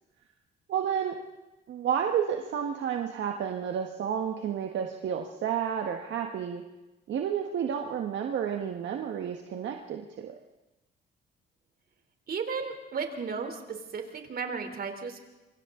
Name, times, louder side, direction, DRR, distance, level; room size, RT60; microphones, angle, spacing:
voice 1, 0.7-1.1 1.7-6.6 7.1-10.4, right 8 dB, 70° right, 3 dB, 1.5 m, -31 dB
voice 2, 12.3-15.2, right 5 dB, 50° right, 5 dB, 3.4 m, -34 dB
27.0 x 25.0 x 3.8 m, 1.1 s
cardioid pair, 90°, 20 cm